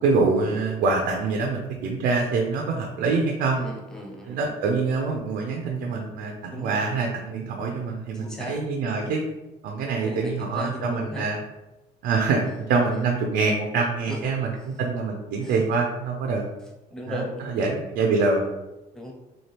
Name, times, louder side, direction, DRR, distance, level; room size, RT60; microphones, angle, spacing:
voice 1, 0.0-3.6 4.3-9.2 9.6-11.4 12.0-16.5 17.1-18.4, right 4 dB, 75° right, 1 dB, 0.5 m, -25 dB
voice 2, 3.6-4.4 6.5-6.8 8.1-8.6 8.9-9.1 10.0-11.3 12.4-12.6 12.9-13.0 14.1-14.2 15.4-15.6 16.9-17.4 18.9-19.1, left 1 dB, 5° left, -1 dB, 0.7 m, -36 dB
4.3 x 2.3 x 3.3 m, 1.0 s
cardioid pair, 110°, 17 cm